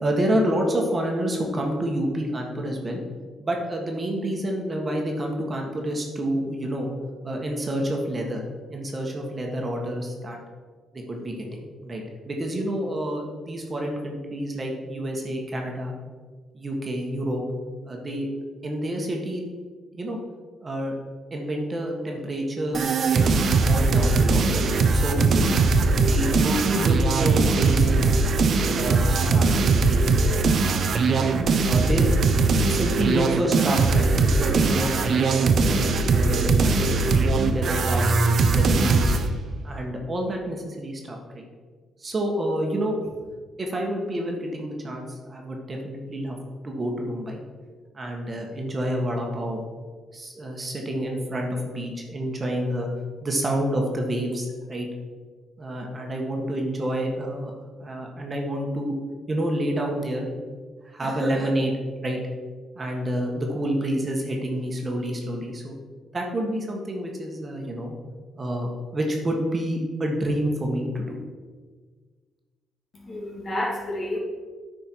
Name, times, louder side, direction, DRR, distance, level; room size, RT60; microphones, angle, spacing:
voice 1, 0.0-3.0 3.4-6.9 7.2-8.4 8.7-10.4 10.9-15.9 16.5-17.4 17.9-18.3 18.6-19.5 19.9-20.2 20.6-20.9 21.3-24.4 24.9-25.5 26.0-28.1 28.7-29.5 29.9-30.4 31.6-32.1 32.7-37.0 37.5-38.2 38.5-39.2 39.6-41.5 42.0-42.9 43.6-46.3 46.6-47.4 47.9-49.6 50.1-52.9 53.2-54.9 55.6-57.5 57.8-58.9 59.3-60.3 60.8-61.7 62.0-62.2 62.7-65.7 66.1-67.9 68.4-71.2, right 1 dB, 30° right, 1 dB, 1.5 m, -28 dB
sound 1, 22.7-39.3, right 3 dB, 55° right, 0.7 m, -20 dB
voice 2, 72.9-74.2, left 1 dB, 45° left, -3 dB, 2.6 m, -30 dB
9.1 x 5.2 x 4.6 m, 1.5 s
cardioid pair, 90°, 0 cm